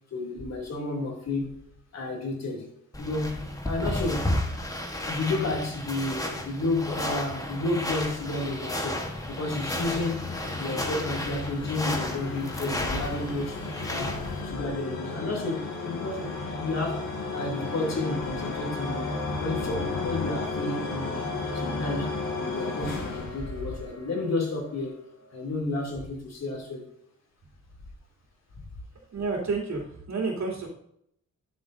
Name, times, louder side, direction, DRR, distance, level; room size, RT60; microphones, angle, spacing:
voice 1, 0.1-1.5 1.9-2.7 3.0-4.3 5.1-10.2 10.5-19.1 19.4-21.2 21.5-25.0 25.3-26.8, left 2 dB, 55° left, 0 dB, 2.9 m, -31 dB
sound 1, 2.9-14.4, left 1 dB, 10° left, 1.3 m, -33 dB
sound 2, 8.2-24.3, left 3 dB, 90° left, 3.1 m, -34 dB
voice 2, 29.1-30.7, right 4 dB, 60° right, -2 dB, 3.4 m, -30 dB
12.5 x 7.5 x 2.7 m, 0.71 s
wide cardioid pair, 125°, 31 cm